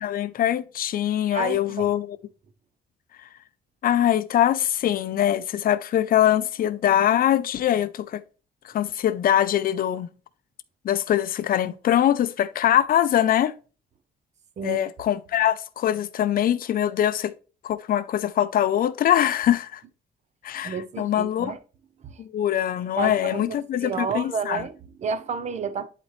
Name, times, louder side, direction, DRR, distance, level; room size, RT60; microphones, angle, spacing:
voice 1, 0.0-2.2 3.8-8.2 8.6-10.1 10.8-13.5 14.6-17.3 17.6-19.8 20.4-21.5 22.2-24.6, left 11 dB, 55° left, 0.6 m, -23 dB
voice 2, 1.3-1.9 14.6-14.8 20.6-21.6 22.0-22.2 22.9-25.9, right 5 dB, 40° right, 0.8 m, -31 dB
11.0 x 4.2 x 3.2 m
cardioid pair, 175°, 17 cm